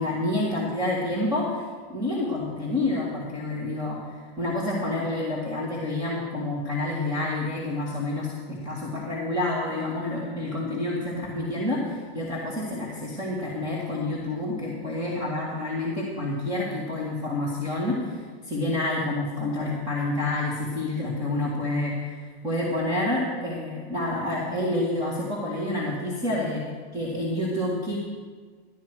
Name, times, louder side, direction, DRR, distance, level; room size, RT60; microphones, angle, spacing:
voice 1, 0.0-1.6 1.9-26.6 26.9-28.0, left 2 dB, 10° right, -6 dB, 1.9 m, -28 dB
13.0 x 10.5 x 4.7 m, 1.5 s
supercardioid pair, 160°, 32 cm